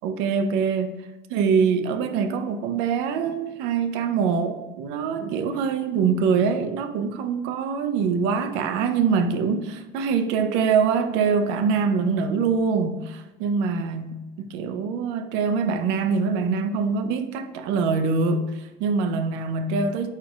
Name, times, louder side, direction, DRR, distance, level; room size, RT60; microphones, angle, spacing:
voice 1, 0.0-0.9 1.3-20.1, right 5 dB, 85° right, 9 dB, 0.5 m, -24 dB
4.9 x 4.4 x 2.3 m, 1.1 s
cardioid pair, 160°, 18 cm